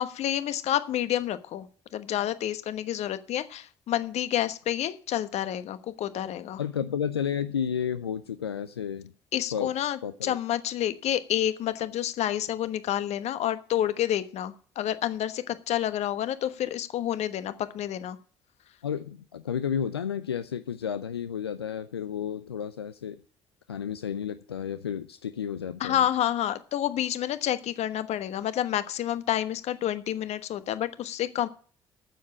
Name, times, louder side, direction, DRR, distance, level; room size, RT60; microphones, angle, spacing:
voice 1, 0.0-1.7 1.9-6.6 9.3-18.2 25.8-31.5, left 11 dB, 55° left, 13 dB, 1.2 m, -29 dB
voice 2, 6.6-9.1 9.5-9.7 10.0-10.4 18.8-23.2 23.7-26.0, left 8 dB, 90° left, 11 dB, 0.5 m, -32 dB
9.3 x 7.6 x 8.5 m, 0.44 s
figure-of-eight pair, 50°, 13 cm